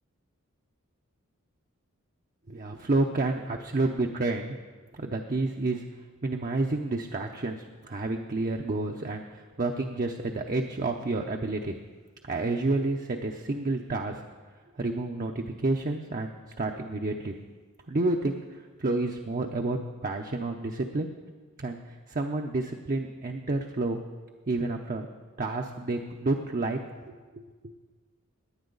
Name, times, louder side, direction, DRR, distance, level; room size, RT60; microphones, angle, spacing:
voice 1, 2.5-4.6 4.9-5.8 6.2-11.7 12.2-14.2 14.8-16.3 16.6-17.3 17.9-21.1 21.6-21.8 22.1-24.0 24.5-25.1 25.4-26.8 27.1-27.7, right 2 dB, 40° right, 2 dB, 0.7 m, -30 dB
18.0 x 9.8 x 3.9 m, 1.4 s
head